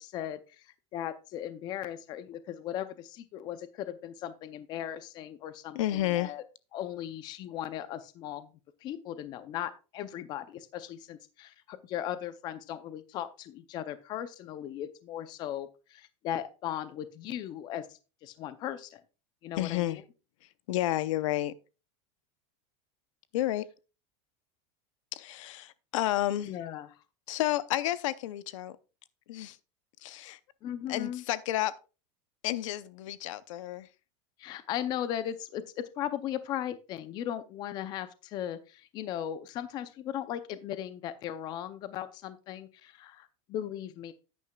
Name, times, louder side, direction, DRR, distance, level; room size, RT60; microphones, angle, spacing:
voice 1, 0.0-6.4 6.7-8.5 8.8-19.0 19.4-20.0 26.4-26.9 30.6-31.2 34.4-44.1, left 11 dB, 25° left, 0.5 m, -37 dB
voice 2, 5.7-6.3 19.6-20.0 20.7-21.5 23.3-23.7 25.1-26.5 27.3-28.8 29.3-29.6 30.0-30.4 30.9-31.7 32.4-33.9, left 14 dB, 80° left, 0.7 m, -31 dB
11.0 x 9.4 x 2.3 m
supercardioid pair, 175°, 16 cm